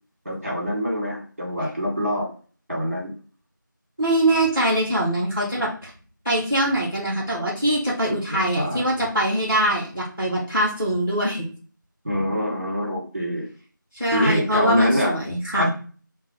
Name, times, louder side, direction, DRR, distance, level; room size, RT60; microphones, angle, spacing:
voice 1, 0.3-2.3 2.7-3.1 8.3-8.8 12.0-13.5 14.1-15.1 15.6-15.7, equal, 40° right, -3 dB, 1.7 m, -25 dB
voice 2, 4.0-5.9 6.2-11.5 13.9-15.7, right 1 dB, 5° left, -13 dB, 1.2 m, -23 dB
4.1 x 2.0 x 3.4 m, 0.39 s
figure-of-eight pair, 175°, 11 cm